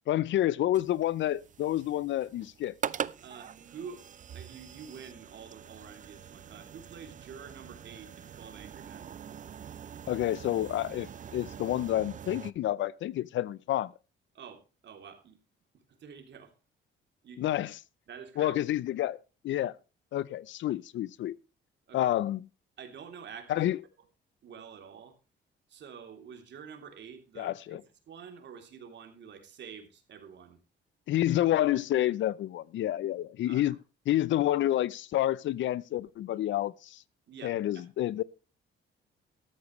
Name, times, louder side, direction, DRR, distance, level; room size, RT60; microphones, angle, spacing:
voice 1, 0.1-2.7 10.1-13.9 17.4-17.8 18.4-19.2 19.4-19.7 20.1-21.4 21.9-22.5 23.5-23.8 27.4-27.8 31.1-33.8 34.1-37.0 37.4-38.2, left 13 dB, 70° left, 0.6 m, -29 dB
sound 1, 0.7-12.5, right 8 dB, 40° right, 0.5 m, -43 dB
voice 2, 3.2-4.1 4.3-9.1 14.3-15.4 15.7-16.5 17.2-17.4 18.1-18.5 21.9-22.1 22.8-23.6 24.4-25.2 25.7-27.8 28.1-30.6 33.4-33.8 37.3-37.8, right 7 dB, 65° right, 3.2 m, -48 dB
13.5 x 13.0 x 3.2 m
cardioid pair, 90°, 20 cm